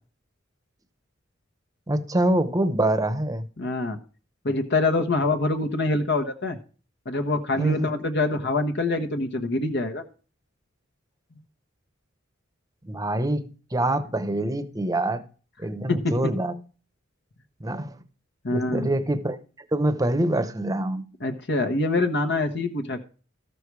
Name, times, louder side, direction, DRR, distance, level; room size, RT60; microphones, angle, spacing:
voice 1, 1.9-3.4 7.6-7.9 12.8-15.2 15.6-16.5 17.6-18.0 18.5-19.4 19.7-21.0, right 1 dB, 15° right, 0.9 m, -25 dB
voice 2, 3.6-4.0 4.4-6.6 7.1-10.0 15.9-16.1 18.4-18.9 21.2-23.0, left 2 dB, 55° left, 1.2 m, -25 dB
13.5 x 6.8 x 4.8 m
head